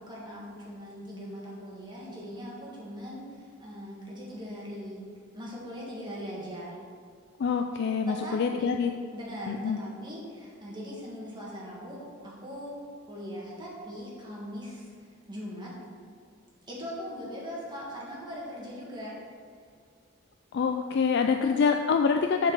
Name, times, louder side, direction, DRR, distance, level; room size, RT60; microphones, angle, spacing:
voice 1, 0.0-5.0 5.3-6.8 8.1-8.9 9.1-12.8 13.1-15.8 16.7-19.2 21.4-21.7, equal, 20° right, -5 dB, 1.9 m, -40 dB
voice 2, 7.4-8.9 9.5-9.8 20.5-22.5, left 5 dB, 55° left, 5 dB, 0.3 m, -26 dB
7.1 x 4.6 x 6.1 m, 2.1 s
head